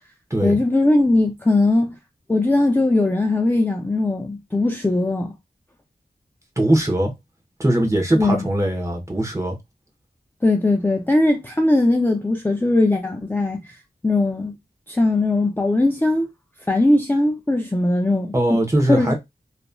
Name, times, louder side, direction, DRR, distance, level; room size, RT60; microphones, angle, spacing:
voice 1, 0.4-2.0 2.3-5.3 8.2-8.4 10.4-13.8 14.0-14.5 14.9-16.3 16.7-18.6 18.9-19.1, left 2 dB, 10° left, 0.4 m, -19 dB
voice 2, 6.6-7.1 7.6-9.6 18.3-19.1, right 1 dB, 15° right, 1.0 m, -20 dB
3.0 x 2.5 x 2.2 m
wide cardioid pair, 65°, 17 cm